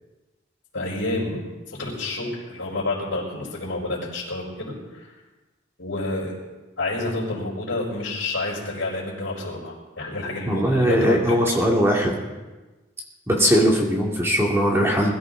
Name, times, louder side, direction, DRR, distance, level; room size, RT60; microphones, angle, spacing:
voice 1, 0.7-1.4 1.7-5.1 5.8-6.4 6.8-11.4, left 2 dB, 75° left, -8 dB, 5.0 m, -29 dB
voice 2, 10.5-12.2 13.3-15.1, equal, 15° right, -2 dB, 2.3 m, -20 dB
21.5 x 13.5 x 3.9 m, 1.2 s
head